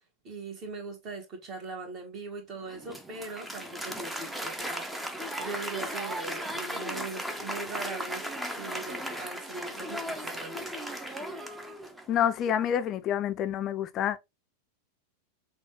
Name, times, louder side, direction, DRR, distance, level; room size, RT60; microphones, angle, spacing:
voice 1, 0.2-5.1 5.4-10.7, right 3 dB, 35° right, 1.5 m, -41 dB
Applause, 2.7-12.2, equal, 5° right, 0.6 m, -36 dB
voice 2, 12.1-14.2, left 9 dB, 35° left, 0.5 m, -27 dB
6.1 x 2.3 x 3.0 m
figure-of-eight pair, 90°, 0 cm